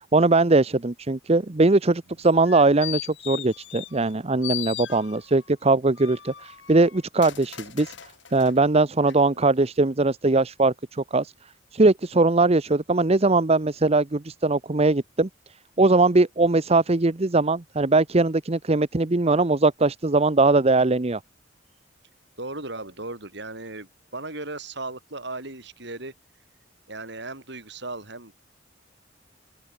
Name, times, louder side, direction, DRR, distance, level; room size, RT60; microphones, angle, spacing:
voice 1, 0.1-7.9 8.3-11.3 11.7-15.3 15.8-21.2, right 3 dB, 35° right, 0.8 m, -21 dB
sound 1, 2.2-4.1 4.4-5.4 6.0-8.6 9.1-9.2, left 13 dB, 65° left, 1.6 m, -37 dB
voice 2, 22.4-26.1 26.9-28.4, right 2 dB, 65° right, 7.9 m, -36 dB
open air
head